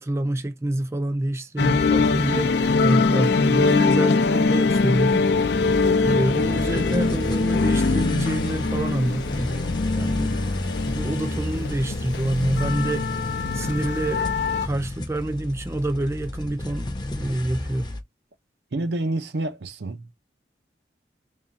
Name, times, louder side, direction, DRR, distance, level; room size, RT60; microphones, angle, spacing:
voice 1, 0.0-5.3 6.0-9.6 9.9-10.4 10.9-13.1 13.5-17.9, right 1 dB, 15° right, 0.3 m, -27 dB
sound 1, 1.6-14.7, left 4 dB, 75° left, 0.5 m, -23 dB
sound 2, 2.1-2.7 3.4-3.5 4.7-18.0, left 1 dB, 25° left, 0.7 m, -31 dB
voice 2, 18.7-20.1, right 2 dB, 75° right, 0.7 m, -28 dB
3.7 x 2.4 x 4.1 m
head